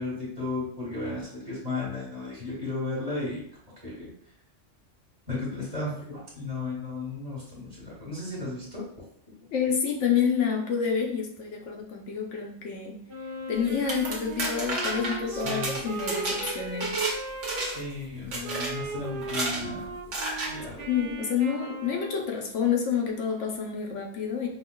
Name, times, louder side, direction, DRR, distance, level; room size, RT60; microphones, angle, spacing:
voice 1, 0.0-3.4 3.8-4.1 5.3-8.8 15.3-15.8 17.6-19.8 20.5-20.8, left 3 dB, 30° right, -6 dB, 1.3 m, -34 dB
voice 2, 9.5-13.0 13.5-16.9 20.9-24.5, left 7 dB, 80° left, 1 dB, 1.0 m, -28 dB
Wind instrument woodwind instrument, 13.1-17.8 18.4-22.4, right 2 dB, 50° right, 1.0 m, -38 dB
sound 1, 13.7-17.2 17.4-17.9 18.3-18.7 19.2-19.6 20.1-20.5, right 2 dB, 85° right, 1.1 m, -31 dB
5.1 x 2.3 x 2.2 m, 0.65 s
omnidirectional pair, 1.3 m